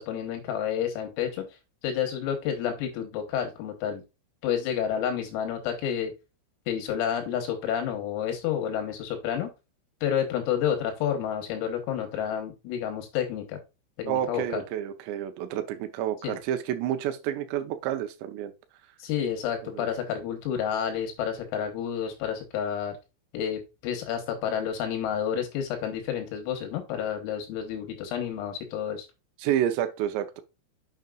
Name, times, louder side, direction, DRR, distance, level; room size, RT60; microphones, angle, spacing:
voice 1, 0.0-4.0 4.4-6.1 6.7-9.5 10.0-13.6 14.0-14.6 16.2-16.4 19.0-23.0 23.3-29.1, left 9 dB, 85° left, 3.8 m, -30 dB
voice 2, 14.1-18.5 19.8-19.9 29.4-30.4, right 11 dB, 85° right, 2.5 m, -29 dB
7.3 x 6.6 x 2.3 m
omnidirectional pair, 5.9 m